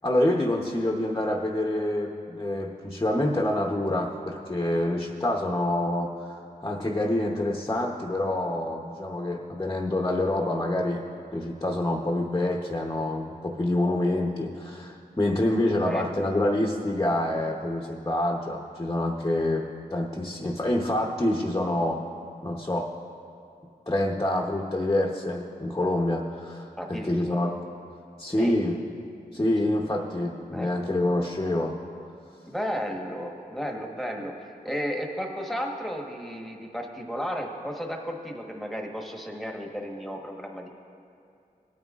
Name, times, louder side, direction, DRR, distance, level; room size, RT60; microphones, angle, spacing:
voice 1, 0.0-11.0 11.3-19.6 19.9-22.0 22.4-22.9 23.9-27.5 28.2-28.8 29.3-31.7, left 1 dB, 20° left, 0 dB, 0.8 m, -27 dB
voice 2, 26.8-27.4 28.3-28.5 30.5-30.7 32.5-40.7, equal, ahead, 1 dB, 1.2 m, -33 dB
19.0 x 9.2 x 2.4 m, 2.5 s
wide cardioid pair, 75°, 16 cm